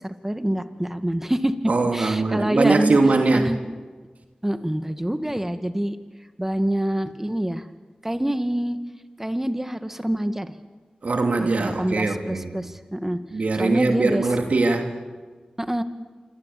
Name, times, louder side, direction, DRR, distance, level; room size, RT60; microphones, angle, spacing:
voice 1, 0.0-1.5 1.9-3.0 3.3-3.6 4.4-6.0 6.4-7.6 8.0-8.8 9.2-10.5 11.4-13.2 13.5-14.3 15.6-15.8, right 1 dB, 15° right, 8 dB, 2.2 m, -26 dB
voice 2, 1.7-3.5 11.0-12.5 13.3-14.9, right 3 dB, 70° right, 4 dB, 2.9 m, -21 dB
27.0 x 25.0 x 8.7 m, 1.4 s
cardioid pair, 40°, 3 cm